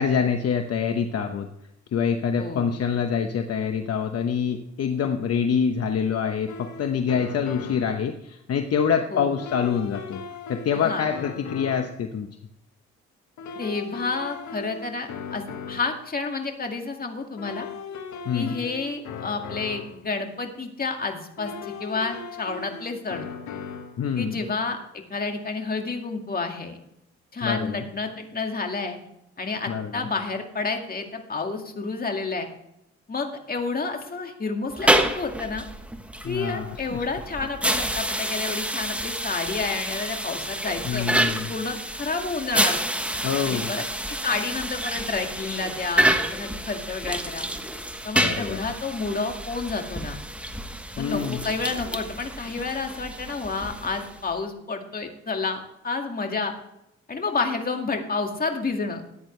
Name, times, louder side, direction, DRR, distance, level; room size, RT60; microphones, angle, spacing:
voice 1, 0.0-1.5 1.9-10.2 10.5-12.3 18.2-18.6 24.0-24.4 27.4-27.8 29.7-30.1 36.2-37.0 40.8-41.5 43.2-43.7 48.2-48.6 51.0-51.4, left 7 dB, 55° left, 6 dB, 1.0 m, -26 dB
voice 2, 2.4-2.7 9.1-9.4 10.7-11.1 13.6-17.7 18.3-23.3 24.2-26.8 27.3-29.0 29.4-32.5 33.1-35.7 36.2-42.8 43.4-47.5 48.0-50.2 51.0-56.5 57.1-59.0, left 4 dB, 30° left, 3 dB, 2.1 m, -30 dB
sound 1, 6.5-8.0 9.4-12.0 13.4-16.1 17.4-20.0 21.4-24.0, left 6 dB, 80° left, 1.4 m, -38 dB
sound 2, 34.7-54.3, right 1 dB, 5° right, 1.2 m, -28 dB
14.0 x 9.9 x 3.3 m, 0.83 s
cardioid pair, 100°, 29 cm